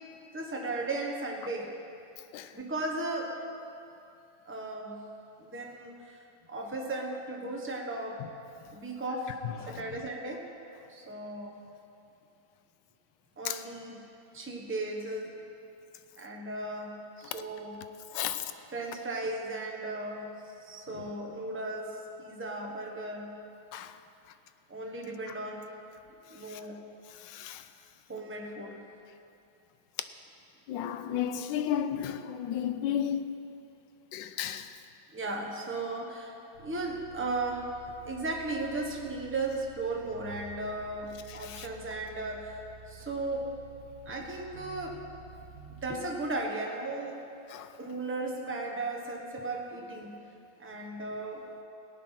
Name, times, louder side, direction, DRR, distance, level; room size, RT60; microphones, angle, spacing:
voice 1, 0.3-1.7 2.5-3.3 4.4-5.1 5.4-6.2 6.5-8.2 8.7-9.4 9.7-10.4 10.9-11.6 13.4-14.0 14.3-15.3 16.2-17.8 18.7-23.3 24.7-25.6 26.3-26.8 28.1-28.8 35.1-37.8 38.0-42.6 42.9-43.5 44.0-45.0 45.7-47.2 47.8-50.2 50.6-51.5, right 2 dB, 10° right, 1.0 m, -36 dB
voice 2, 18.1-18.5 23.7-23.9 27.2-27.6 30.7-33.3 34.1-34.7 41.3-41.7 47.5-47.7, left 9 dB, 75° left, 1.2 m, -33 dB
sound 1, 36.5-46.0, right 4 dB, 45° right, 1.3 m, -51 dB
17.5 x 8.8 x 5.8 m
omnidirectional pair, 2.1 m